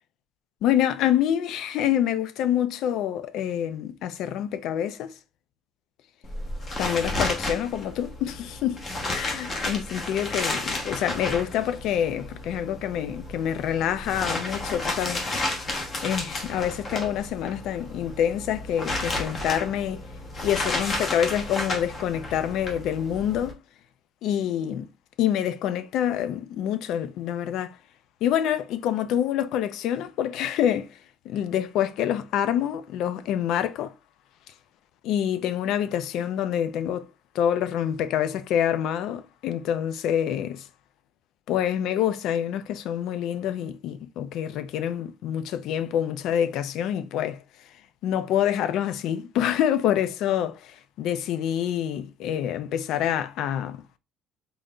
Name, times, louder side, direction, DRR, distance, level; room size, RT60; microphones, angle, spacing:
voice 1, 0.6-5.2 6.8-15.6 16.0-20.0 20.4-23.6 24.2-24.9 25.2-27.8 28.2-31.0 31.2-33.9 35.0-37.0 37.3-40.7 41.5-47.4 48.0-53.8, left 10 dB, 65° left, 0.4 m, -26 dB
sound 1, 6.2-23.5, left 2 dB, 30° left, 0.9 m, -32 dB
3.8 x 3.7 x 2.2 m
cardioid pair, 160°, 0 cm